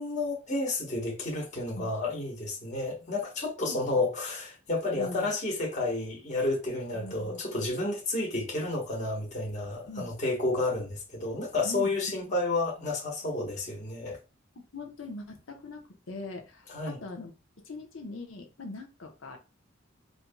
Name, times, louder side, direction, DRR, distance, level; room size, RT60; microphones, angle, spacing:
voice 1, 0.0-14.2 16.7-17.0, left 2 dB, 35° left, 1.3 m, -31 dB
voice 2, 3.6-4.0 5.0-5.3 6.9-7.4 9.9-10.1 11.6-11.9 14.5-17.3 17.6-19.4, left 2 dB, 80° left, 0.9 m, -41 dB
4.3 x 2.8 x 2.3 m
head